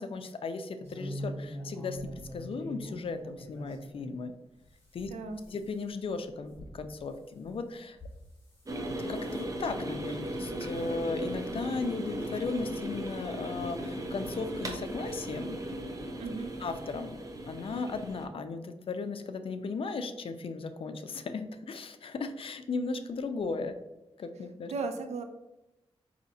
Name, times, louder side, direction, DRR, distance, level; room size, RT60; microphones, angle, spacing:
voice 1, 0.0-4.3 4.9-5.1 5.5-8.0 9.1-15.6 16.6-17.2 17.5-23.7 24.2-24.7, left 4 dB, 55° left, 8 dB, 0.4 m, -36 dB
sound 1, 0.8-4.1 4.6-8.7 9.1-9.5 10.0-10.3 10.6-10.9 11.5-11.6 12.0-12.1 13.2-13.3 14.1-14.9 16.0-16.2 16.6-16.7 17.0-17.1, equal, 25° left, 1.3 m, -44 dB
voice 2, 5.0-5.5 16.2-16.5 24.7-25.2, right 4 dB, 90° right, 7 dB, 0.4 m, -36 dB
sound 2, 8.6-18.3, right 1 dB, 30° right, 0.5 m, -37 dB
5.1 x 2.7 x 2.7 m, 0.97 s
wide cardioid pair, 110°, 11 cm